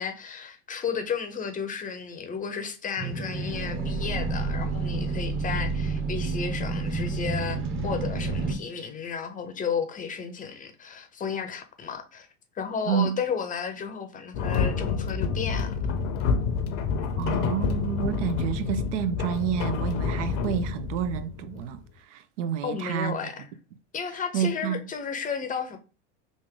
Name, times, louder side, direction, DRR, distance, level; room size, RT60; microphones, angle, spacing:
voice 1, 0.0-12.3 12.5-15.8 22.6-23.5 23.9-25.8, left 6 dB, 20° left, 0.6 m, -33 dB
sound 1, 3.0-8.5, right 3 dB, 35° right, 1.0 m, -29 dB
voice 2, 12.9-13.2 17.2-23.3 24.3-24.8, right 8 dB, 75° right, 0.6 m, -29 dB
sound 2, 14.3-21.8, left 5 dB, 75° left, 0.7 m, -28 dB
3.5 x 2.5 x 3.6 m
supercardioid pair, 105°, 36 cm